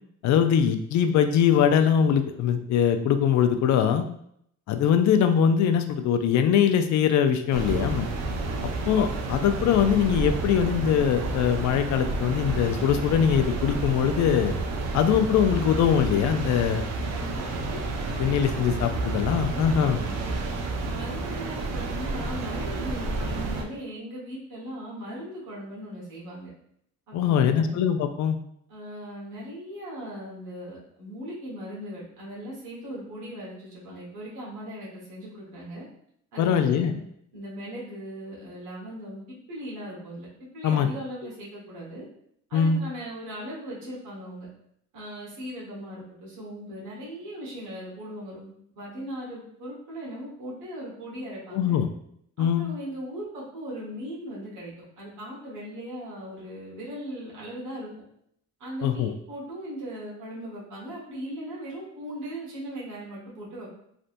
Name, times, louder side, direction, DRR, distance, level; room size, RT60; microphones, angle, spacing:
voice 1, 0.2-4.0 4.7-8.1 8.9-14.5 14.9-16.8 18.2-20.0 27.1-28.4 36.4-36.9 40.6-40.9 42.5-42.8 51.5-51.9 52.4-52.6 58.8-59.1, left 8 dB, 65° left, 8 dB, 0.4 m, -22 dB
sound 1, 7.5-23.6, right 3 dB, 60° right, 0.6 m, -30 dB
voice 2, 17.1-17.7 19.8-20.2 20.8-26.5 27.1-27.8 28.7-35.8 36.3-36.9 37.3-39.2 39.5-40.3 40.5-42.0 42.5-44.5 44.9-51.8 52.4-57.9 58.6-63.7, equal, 80° right, -6 dB, 1.4 m, -38 dB
3.3 x 2.6 x 2.5 m, 0.70 s
cardioid pair, 90°, 30 cm